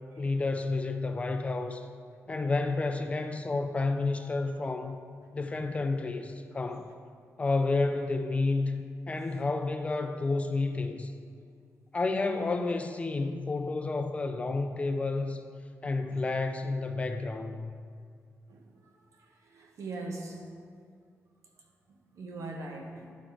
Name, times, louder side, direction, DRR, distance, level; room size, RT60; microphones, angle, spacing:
voice 1, 0.2-1.9 2.3-5.0 5.3-6.9 7.4-11.1 11.9-15.4 15.8-17.7, left 3 dB, 25° left, 7 dB, 0.3 m, -30 dB
voice 2, 19.1-20.6 22.2-23.1, right 2 dB, 65° right, 2 dB, 1.0 m, -41 dB
10.0 x 4.1 x 4.6 m, 2.2 s
wide cardioid pair, 160°, 6 cm